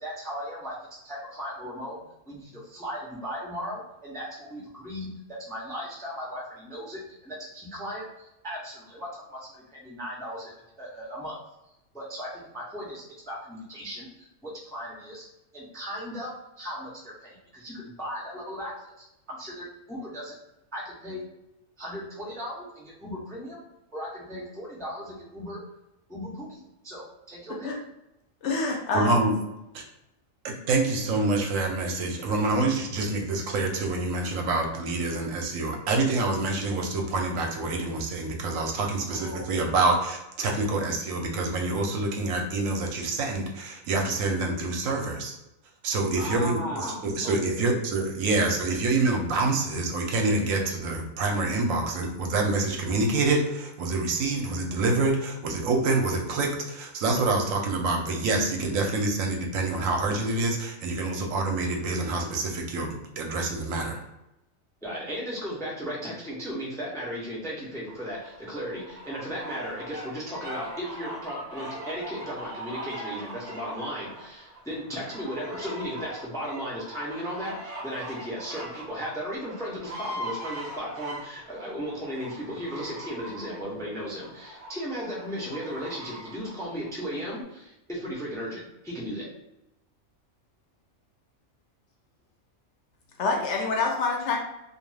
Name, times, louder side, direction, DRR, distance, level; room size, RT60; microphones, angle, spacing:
voice 1, 0.0-11.4 11.9-15.2 15.5-18.9 19.3-20.3 20.7-21.2 21.8-23.6 23.9-25.6 26.1-27.7 39.1-39.6 46.2-47.7 64.8-89.3, equal, 5° left, -4 dB, 0.3 m, -36 dB
voice 2, 28.4-29.2 93.2-94.4, left 3 dB, 65° left, 1 dB, 0.8 m, -26 dB
voice 3, 28.9-29.3 29.7-29.8 30.4-45.4 45.8-64.0, right 2 dB, 80° right, 2 dB, 1.0 m, -26 dB
sound 1, 67.9-87.4, right 1 dB, 40° right, 0.6 m, -41 dB
2.5 x 2.2 x 3.2 m, 0.91 s
omnidirectional pair, 1.4 m